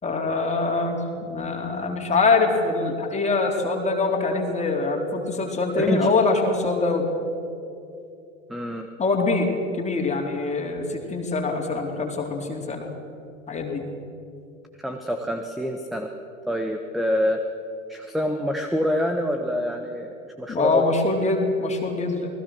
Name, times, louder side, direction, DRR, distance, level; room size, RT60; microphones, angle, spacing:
voice 1, 0.0-7.1 9.0-12.9 13.5-13.8 20.5-22.3, left 3 dB, 15° left, 1 dB, 4.2 m, -24 dB
voice 2, 5.8-6.1 8.5-8.9 14.8-16.1 16.5-17.4 17.9-20.8, equal, ahead, 5 dB, 1.5 m, -26 dB
28.5 x 20.5 x 6.4 m, 2.7 s
figure-of-eight pair, 85°, 40 cm